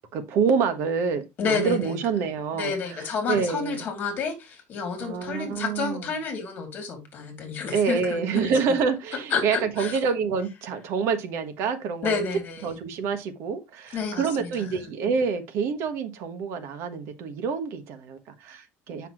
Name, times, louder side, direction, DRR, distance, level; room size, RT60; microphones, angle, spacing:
voice 1, 0.1-3.9 5.0-6.1 7.7-12.2 12.6-19.1, right 5 dB, 60° right, 1.2 m, -27 dB
voice 2, 1.4-1.9 2.5-8.6 9.3-10.0 12.0-12.7 13.9-14.7, left 5 dB, 35° left, 2.7 m, -30 dB
7.6 x 5.7 x 3.0 m
cardioid pair, 165°, 5 cm